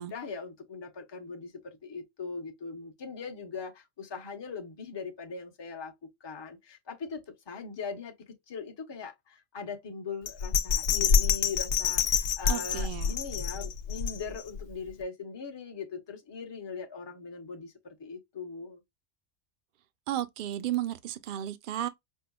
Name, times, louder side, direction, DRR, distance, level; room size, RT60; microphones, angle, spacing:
voice 1, 0.0-5.9 6.2-18.8, left 5 dB, 25° left, 0.7 m, -40 dB
Bell, 10.3-14.6 15.0-15.1, left 7 dB, 80° left, 0.9 m, -27 dB
voice 2, 12.5-13.1 20.1-21.9, right 12 dB, 55° right, 0.6 m, -33 dB
5.4 x 2.2 x 2.2 m
omnidirectional pair, 1.2 m